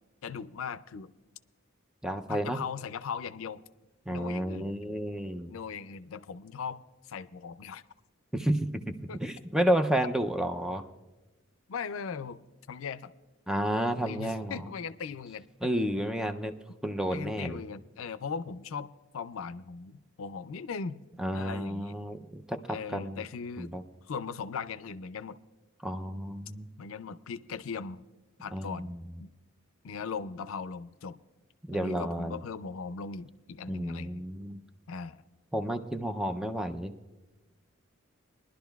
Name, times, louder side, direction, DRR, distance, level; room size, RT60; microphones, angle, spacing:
voice 1, 0.2-1.1 2.3-3.6 4.1-4.7 5.5-6.8 7.1-7.8 9.1-9.2 11.7-12.4 12.7-13.1 14.1-15.7 17.1-21.0 21.3-22.0 22.7-23.7 24.1-25.4 26.8-28.0 28.4-29.3 29.8-31.2 31.7-34.2 34.9-35.2, left 5 dB, 85° left, 13 dB, 0.4 m, -39 dB
voice 2, 2.0-2.6 4.1-5.5 8.3-10.8 13.5-14.6 15.6-16.5 16.8-17.6 21.2-22.6 22.9-23.2 23.6-23.8 25.8-26.7 28.5-29.0 31.7-32.4 33.7-34.6 35.5-36.9, right 1 dB, 5° right, 7 dB, 0.4 m, -31 dB
22.0 x 11.5 x 2.3 m, 1.1 s
head